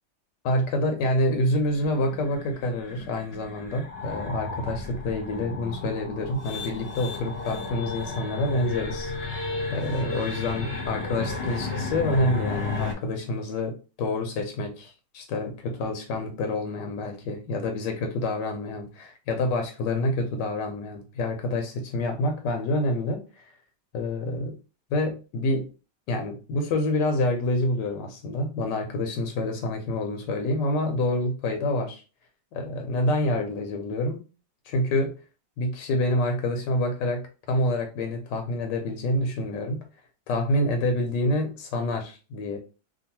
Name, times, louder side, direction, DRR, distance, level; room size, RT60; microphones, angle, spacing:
voice 1, 0.4-9.4 9.7-23.4 23.9-24.5 24.9-25.7 26.1-32.0 32.5-34.2 34.7-35.1 35.6-39.8 40.3-42.6, left 1 dB, 90° left, 4 dB, 1.3 m, -27 dB
sound 1, 1.4-12.9, left 3 dB, 50° left, 0.8 m, -34 dB
2.9 x 2.3 x 2.8 m, 0.33 s
omnidirectional pair, 1.9 m